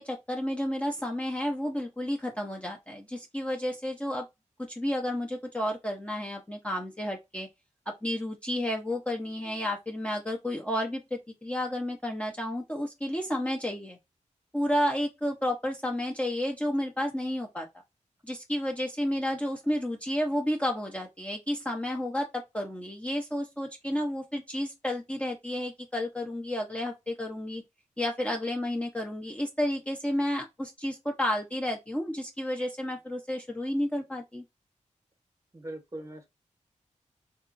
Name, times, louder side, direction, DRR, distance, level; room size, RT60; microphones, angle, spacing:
voice 1, 0.0-4.3 4.7-7.5 8.0-14.0 14.5-17.7 18.2-27.6 28.0-34.4, left 1 dB, 10° left, 0.6 m, -31 dB
voice 2, 35.5-36.3, right 1 dB, 25° right, 0.9 m, -40 dB
3.8 x 2.3 x 2.5 m
wide cardioid pair, 90°, 13 cm